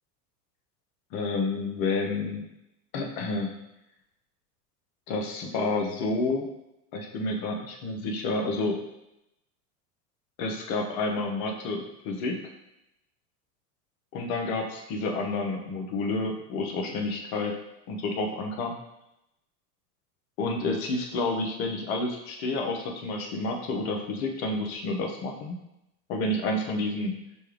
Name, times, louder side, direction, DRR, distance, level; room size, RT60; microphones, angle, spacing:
voice 1, 1.1-2.4 2.9-3.5 5.1-6.5 6.9-8.8 10.4-12.4 14.1-17.5 17.9-18.8 20.4-25.6 26.1-27.1, left 2 dB, 55° left, 2 dB, 1.0 m, -29 dB
6.6 x 2.3 x 3.3 m, 0.87 s
hypercardioid pair, 90°, 49 cm